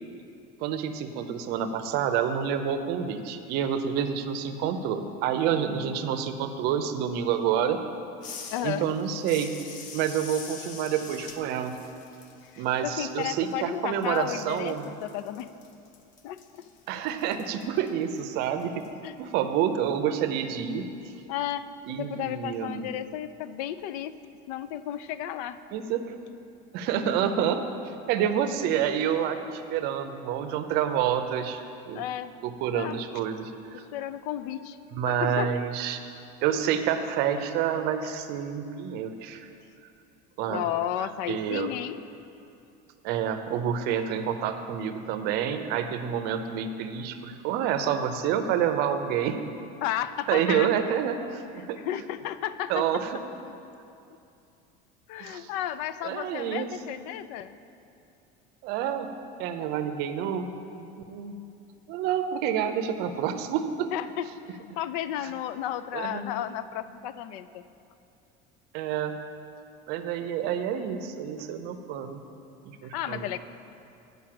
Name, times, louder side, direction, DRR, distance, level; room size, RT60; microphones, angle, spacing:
voice 1, 0.6-7.8 8.6-9.5 9.9-11.8 12.6-14.9 16.9-18.8 19.2-20.8 21.9-22.9 25.7-26.1 26.7-31.6 31.9-32.0 32.4-33.8 34.9-36.0 36.4-39.5 40.4-40.7 41.0-41.7 43.0-49.4 50.3-51.8 52.7-53.2 55.2-55.5 56.0-56.7 58.6-59.1 59.4-61.3 61.9-63.9 65.9-66.2 68.7-69.1 69.9-72.2 72.6-73.3, right 8 dB, 50° right, 8 dB, 0.6 m, -28 dB
sound 1, 8.2-13.7 14.0-18.9, left 5 dB, 40° left, 0.7 m, -45 dB
voice 2, 8.5-8.9 12.5-15.5 16.2-16.7 19.0-19.1 21.3-21.7 22.0-24.1 24.5-25.6 31.9-32.3 32.7-33.0 33.7-34.8 35.1-35.5 40.5-42.0 49.8-50.7 51.6-52.9 55.1-57.6 63.9-67.6 70.2-70.3 71.4-71.5 72.9-73.4, left 11 dB, 80° left, 13 dB, 0.4 m, -33 dB
8.6 x 5.2 x 7.6 m, 2.6 s
cardioid pair, 170°, 20 cm